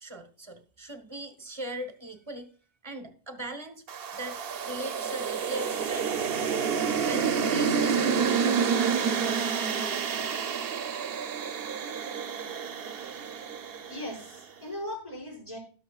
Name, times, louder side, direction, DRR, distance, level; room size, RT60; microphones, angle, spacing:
voice 1, 0.0-2.5 2.8-3.8 4.1-6.2 7.0-9.4, right 1 dB, 25° right, 7 dB, 1.2 m, -40 dB
sound 1, 3.9-14.2, right 6 dB, 65° right, 0.9 m, -29 dB
voice 2, 13.8-15.6, left 1 dB, 35° left, -4 dB, 5.6 m, -38 dB
17.0 x 6.5 x 2.4 m, 0.42 s
omnidirectional pair, 1.1 m